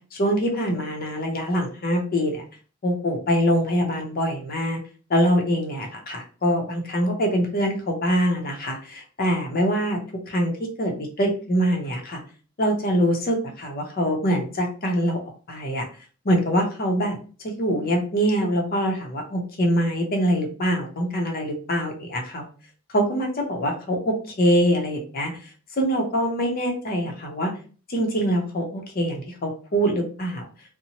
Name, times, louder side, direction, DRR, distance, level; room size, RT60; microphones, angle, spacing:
voice 1, 0.2-2.4 2.8-4.8 5.1-10.0 10.3-10.5 10.8-12.2 12.6-15.2 15.5-15.8 16.2-17.2 17.4-22.5 22.9-25.3 25.8-27.5 27.9-30.4, equal, 45° left, 2 dB, 0.7 m, -24 dB
2.8 x 2.1 x 2.8 m, 0.38 s
head